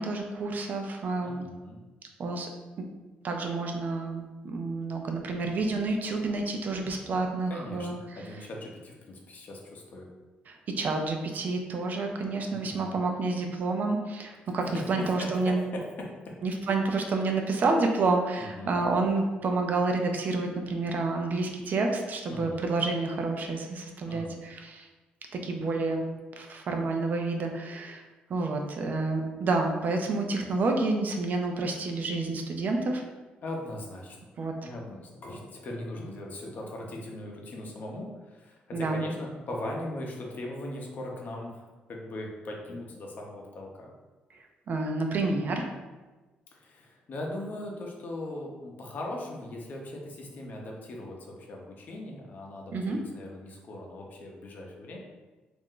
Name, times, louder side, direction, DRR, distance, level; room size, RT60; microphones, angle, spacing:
voice 1, 0.0-1.5 2.2-2.5 2.8-2.9 3.2-7.9 10.5-15.6 16.4-24.9 25.4-26.1 26.4-28.0 28.3-33.0 34.4-34.5 38.7-39.0 44.7-45.6 52.7-53.0, right 3 dB, 55° right, 3 dB, 0.4 m, -29 dB
voice 2, 1.2-1.8 7.5-7.9 8.2-10.1 12.5-12.9 14.7-16.4 18.4-18.7 22.3-22.6 24.1-24.4 33.4-34.2 34.6-43.9 46.5-55.0, left 1 dB, 55° left, 0 dB, 0.6 m, -39 dB
2.5 x 2.1 x 3.7 m, 1.2 s
cardioid pair, 85°, 4 cm